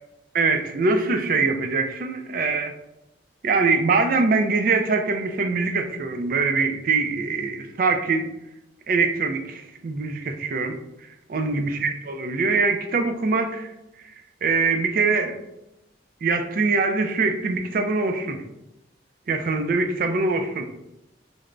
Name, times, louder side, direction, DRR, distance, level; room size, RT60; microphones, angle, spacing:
voice 1, 0.3-2.7 3.4-8.3 8.9-10.8 11.3-13.7 14.0-14.1 14.4-15.4 16.2-18.4 19.3-20.6, right 4 dB, 50° right, 7 dB, 0.4 m, -23 dB
3.3 x 2.0 x 3.7 m, 0.89 s
head